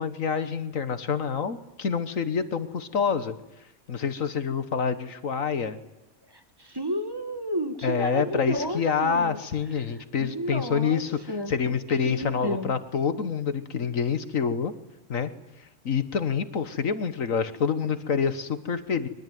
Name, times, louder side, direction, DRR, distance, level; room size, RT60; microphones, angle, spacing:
voice 1, 0.0-3.3 3.9-5.8 7.8-14.7 15.1-15.3 15.9-19.1, left 6 dB, 65° left, 12 dB, 1.7 m, -27 dB
voice 2, 6.6-9.4 10.2-11.0 11.3-11.8 12.0-12.8, equal, 15° right, 8 dB, 2.1 m, -31 dB
25.0 x 23.5 x 9.3 m, 0.92 s
omnidirectional pair, 1.5 m